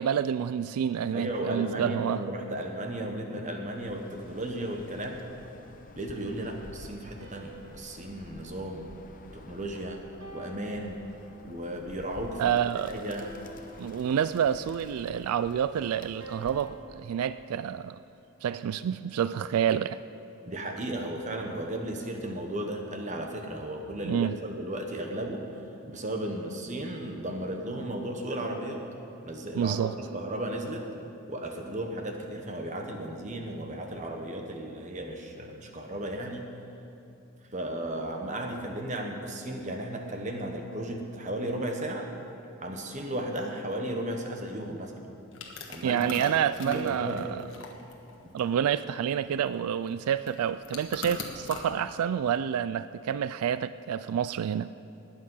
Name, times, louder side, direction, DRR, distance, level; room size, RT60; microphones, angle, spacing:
voice 1, 0.0-2.2 12.4-13.1 13.8-18.0 18.4-20.0 24.0-24.3 29.5-29.9 45.8-47.4 48.3-54.7, right 8 dB, 90° right, 14 dB, 0.3 m, -28 dB
voice 2, 1.1-5.2 5.9-8.9 9.3-10.0 10.3-11.0 11.4-12.5 12.9-13.3 20.4-25.5 25.9-28.8 29.2-29.8 30.1-30.9 31.3-36.5 37.5-42.1 42.6-44.9 45.7-47.3, right 1 dB, 35° right, 3 dB, 1.3 m, -35 dB
Bird, 3.7-16.8, left 2 dB, 40° left, 0.7 m, -50 dB
sound 1, 7.2-9.6 10.2-11.7 13.2-14.7 16.2-18.5, right 1 dB, 65° right, 1.9 m, -50 dB
sound 2, 45.3-51.7, left 4 dB, 55° left, 1.5 m, -43 dB
20.0 x 8.7 x 5.6 m, 2.8 s
head